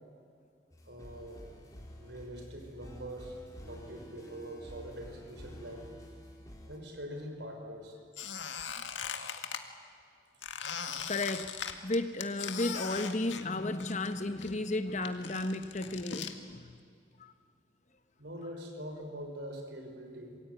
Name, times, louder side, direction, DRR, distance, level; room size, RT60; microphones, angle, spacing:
sound 1, 0.7-6.8, equal, 20° left, 4.4 m, -50 dB
voice 1, 0.8-1.4 2.0-3.4 3.7-5.9 6.7-8.0 18.2-20.4, equal, 65° right, 4 dB, 5.4 m, -43 dB
Squeak, 8.1-9.6 10.4-14.1 14.4-16.3, left 7 dB, 80° left, 1.9 m, -40 dB
voice 2, 11.1-11.5 11.8-16.8 17.2-17.3, left 2 dB, 40° left, 10 dB, 1.2 m, -34 dB
27.0 x 23.0 x 9.3 m, 2.3 s
head